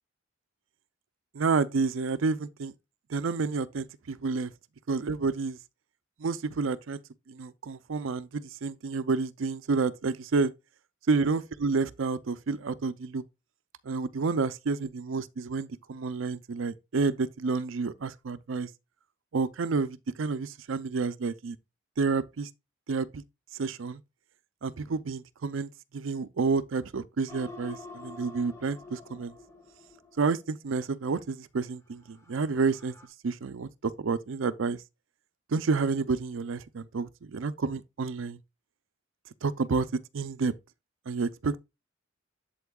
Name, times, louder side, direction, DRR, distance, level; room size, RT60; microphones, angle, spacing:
voice 1, 1.3-2.7 3.1-4.5 4.9-5.6 6.2-7.0 7.3-10.5 11.1-13.2 13.8-18.7 19.3-21.6 22.0-22.5 22.9-23.2 23.5-24.0 24.6-29.3 30.2-32.9 33.2-34.8 35.5-38.4 39.4-39.9 40.1-40.5 41.1-41.6, right 4 dB, 75° right, 0.5 m, -29 dB
sound 1, 27.3-30.5 31.9-33.1, left 3 dB, 15° left, 1.5 m, -48 dB
8.1 x 7.7 x 2.3 m
head